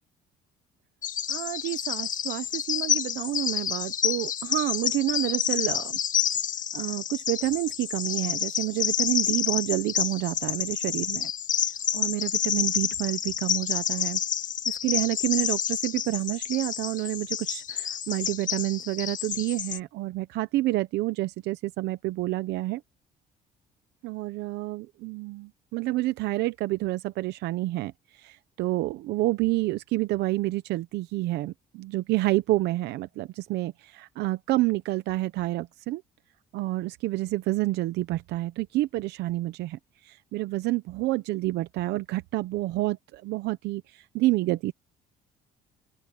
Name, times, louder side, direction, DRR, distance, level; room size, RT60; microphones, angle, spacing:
Bird vocalization bird call bird song, 1.0-19.8, left 9 dB, 50° left, 1.9 m, -29 dB
voice 1, 1.3-6.0 6.7-11.3 11.9-14.2 14.7-22.8 24.0-36.0 36.5-44.7, right 18 dB, 80° right, 0.8 m, -29 dB
open air
cardioid pair, 110°, 17 cm